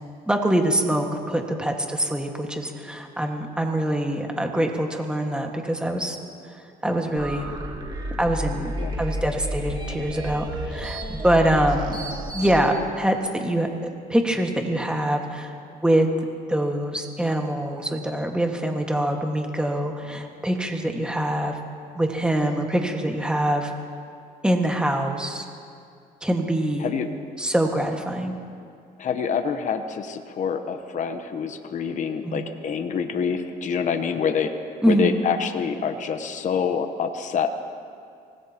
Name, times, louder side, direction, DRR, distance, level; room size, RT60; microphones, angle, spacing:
voice 1, 0.3-6.2 6.8-7.5 8.2-8.7 9.0-12.0 12.3-16.1 16.5-21.6 21.9-23.7 24.4-25.5 26.2-26.9 27.4-28.4 32.2-32.4 34.8-35.1, right 1 dB, 5° right, 2 dB, 1.7 m, -24 dB
sound 1, 7.2-12.6, equal, 25° right, 2.3 m, -31 dB
voice 2, 29.0-34.5 34.9-37.5, left 6 dB, 45° left, 7 dB, 1.0 m, -26 dB
25.0 x 19.0 x 3.0 m, 2.3 s
cardioid pair, 110°, 17 cm